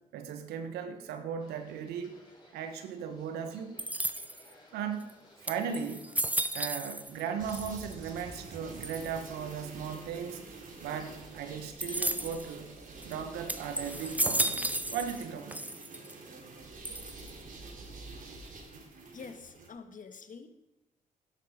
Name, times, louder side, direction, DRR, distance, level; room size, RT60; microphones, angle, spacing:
voice 1, 0.1-2.2 2.5-3.9 4.7-5.1 5.4-6.1 6.5-10.5 10.8-12.7 13.0-15.6, right 7 dB, 85° right, 8 dB, 1.3 m, -37 dB
sound 1, 1.4-11.6, left 1 dB, 25° left, 4.8 m, -60 dB
sound 2, 3.8-4.5 5.1-5.2 5.5-7.2 7.5-8.1 8.8-9.3 11.8-12.5 13.0-13.1 13.5-15.2 15.5-16.1 16.8-17.4, right 1 dB, 10° right, 0.9 m, -33 dB
sound 3, 7.4-19.7, right 3 dB, 55° right, 3.7 m, -47 dB
voice 2, 19.1-20.5, left 5 dB, 55° left, 8 dB, 1.7 m, -46 dB
12.5 x 10.5 x 5.1 m, 1.0 s
hypercardioid pair, 45°, 16 cm